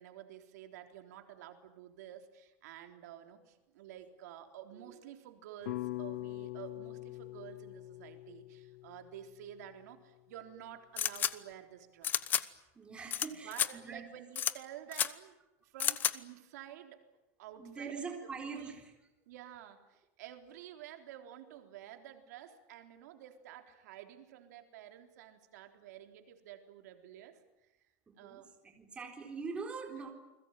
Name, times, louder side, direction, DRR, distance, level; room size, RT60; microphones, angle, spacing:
voice 1, 0.0-12.3 13.3-15.4 15.6-17.0 17.4-18.7 19.3-27.4 28.2-28.5 29.9-30.0, right 11 dB, 85° right, 6 dB, 3.8 m, -51 dB
sound 1, 5.7-9.9, left 18 dB, 85° left, 0.9 m, -43 dB
sound 2, 11.0-11.3 12.0-12.4 13.1-13.3 13.5-13.7 14.3-14.5 14.9-15.1 15.8-16.1, left 9 dB, 20° left, 0.9 m, -30 dB
voice 2, 12.7-14.0 17.6-18.9 28.1-30.1, right 5 dB, 10° right, 3 dB, 4.0 m, -43 dB
29.5 x 21.5 x 9.1 m, 0.96 s
supercardioid pair, 175°, 9 cm